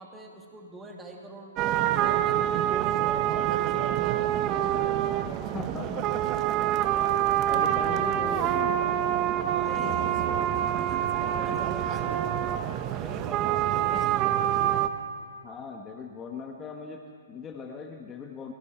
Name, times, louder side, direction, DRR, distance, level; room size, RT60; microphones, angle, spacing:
voice 1, 0.0-4.2 9.3-10.3 10.8-14.5, right 2 dB, 10° right, 0 dB, 2.7 m, -44 dB
sound 1, 1.6-14.9, right 11 dB, 30° right, 1.1 m, -26 dB
voice 2, 5.5-6.3 7.5-8.8 9.8-10.2 11.3-11.6 15.4-18.5, left 5 dB, 20° left, 3 dB, 1.6 m, -39 dB
30.0 x 23.5 x 4.5 m, 2.1 s
figure-of-eight pair, 125°, 0 cm